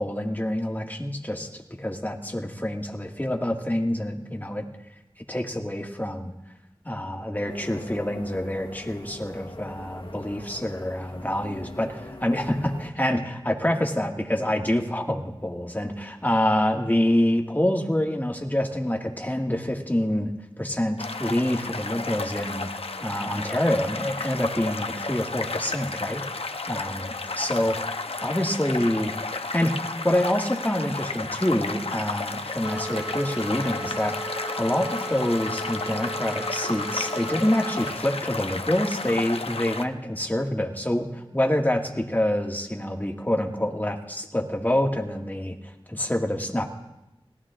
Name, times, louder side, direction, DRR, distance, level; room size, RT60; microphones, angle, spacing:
voice 1, 0.0-4.6 5.3-6.3 6.9-22.7 23.0-26.2 26.7-27.8 28.2-29.1 29.5-45.6 45.9-46.7, left 1 dB, 20° left, 2 dB, 1.9 m, -26 dB
sound 1, 7.5-12.9, left 2 dB, 60° left, 1.8 m, -42 dB
sound 2, 21.0-39.8, left 3 dB, 85° left, 0.7 m, -32 dB
sound 3, 32.6-37.9, right 2 dB, 10° right, 1.5 m, -36 dB
29.5 x 18.0 x 2.5 m, 0.94 s
wide cardioid pair, 45°, 10 cm